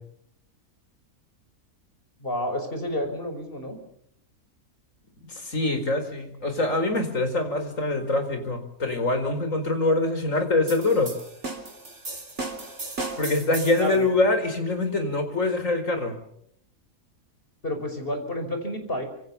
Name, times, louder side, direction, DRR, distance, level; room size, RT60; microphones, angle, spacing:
voice 1, 2.2-3.8 13.8-14.1 17.6-19.1, left 1 dB, 35° left, 6 dB, 5.7 m, -30 dB
voice 2, 5.3-11.1 13.2-16.1, left 2 dB, 55° left, 7 dB, 5.0 m, -24 dB
sound 1, 10.7-14.0, right 2 dB, 50° right, 3.9 m, -35 dB
26.5 x 25.0 x 7.1 m, 0.71 s
omnidirectional pair, 1.6 m